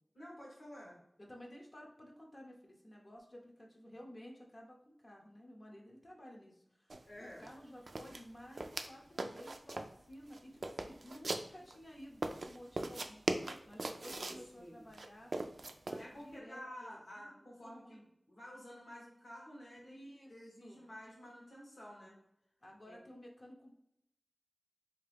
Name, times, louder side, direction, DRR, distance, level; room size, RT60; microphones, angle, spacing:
voice 1, 0.1-1.0 7.1-7.5 14.0-14.9 16.0-20.0 20.3-22.1 22.9-23.0, equal, 75° left, -5 dB, 1.4 m, -51 dB
voice 2, 1.2-13.2 13.7-15.3 15.8-17.3 17.6-18.0 19.9-20.8 22.6-23.7, equal, 45° left, -1 dB, 0.8 m, -54 dB
sound 1, 6.9-7.0 7.3-7.5 7.9-8.9 9.2-10.0 10.3-11.8 12.2-14.4 14.9-16.0, right 2 dB, 75° right, 0.3 m, -40 dB
3.5 x 2.8 x 3.4 m, 0.77 s
wide cardioid pair, 50°, 0 cm